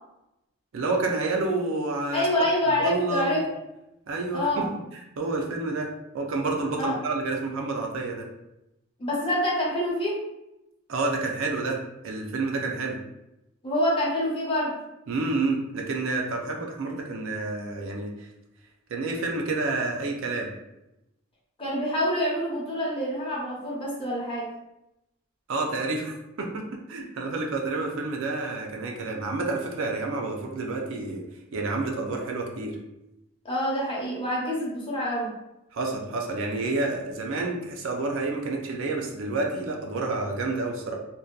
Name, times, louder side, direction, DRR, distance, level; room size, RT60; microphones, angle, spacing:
voice 1, 0.7-3.4 4.1-4.7 5.2-8.3 10.9-11.8 12.0-13.0 15.1-18.3 18.9-20.5 25.5-31.2 31.5-32.8 35.7-40.9, right 3 dB, 65° right, 1 dB, 0.4 m, -29 dB
voice 2, 2.1-3.5 4.3-4.7 6.8-6.9 9.0-10.3 13.6-14.7 21.6-24.5 33.4-35.3, left 1 dB, 25° left, -5 dB, 0.6 m, -26 dB
2.6 x 2.1 x 2.2 m, 0.89 s
head